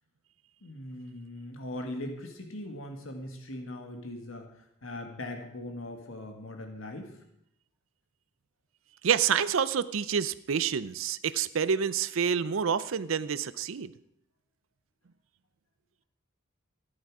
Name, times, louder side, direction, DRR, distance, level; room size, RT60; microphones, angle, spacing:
voice 1, 0.6-4.5 4.8-7.1, left 1 dB, 80° left, 4 dB, 1.9 m, -40 dB
voice 2, 9.0-13.9, right 7 dB, 75° right, 16 dB, 0.5 m, -28 dB
14.0 x 11.0 x 4.9 m, 0.78 s
head